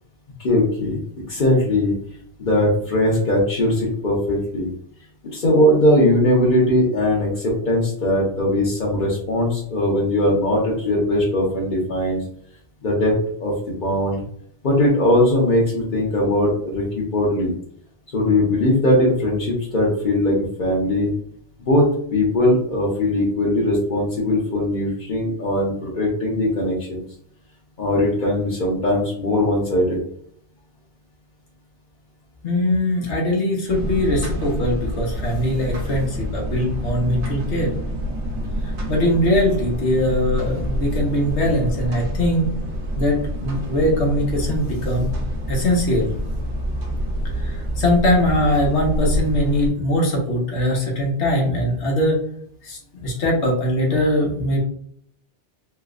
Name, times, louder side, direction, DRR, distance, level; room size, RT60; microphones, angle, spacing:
voice 1, 0.4-1.0 1.3-1.9 2.4-4.7 5.3-12.2 12.8-13.1 13.4-14.2 14.6-17.5 18.1-21.1 21.6-27.0 27.8-30.0, left 1 dB, 50° left, -6 dB, 1.0 m, -20 dB
voice 2, 32.4-37.7 38.9-42.5 43.0-45.1 45.5-46.1 47.4-52.2 52.6-54.6, left 1 dB, 90° left, -1 dB, 1.3 m, -21 dB
sound 1, 33.7-49.7, equal, 80° right, 1.1 m, -27 dB
3.3 x 3.1 x 2.4 m, 0.63 s
omnidirectional pair, 1.1 m